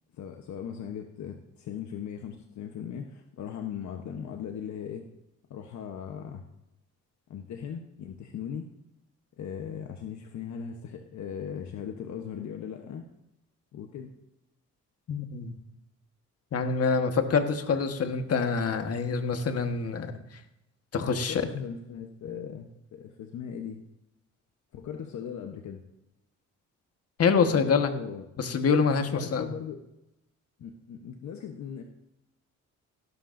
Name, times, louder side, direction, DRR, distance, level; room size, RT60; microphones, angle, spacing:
voice 1, 0.2-5.1 5.5-6.4 7.3-8.7 9.4-13.1 13.7-14.1 21.2-23.8 24.7-25.8 27.4-28.3 29.0-29.8 30.6-31.8, left 8 dB, 70° left, 4 dB, 1.1 m, -38 dB
voice 2, 15.1-15.5 16.5-20.1 20.9-21.4 27.2-27.9 28.4-29.5, left 5 dB, 50° left, 6 dB, 1.5 m, -26 dB
16.5 x 13.0 x 2.7 m, 0.88 s
cardioid pair, 90°, 30 cm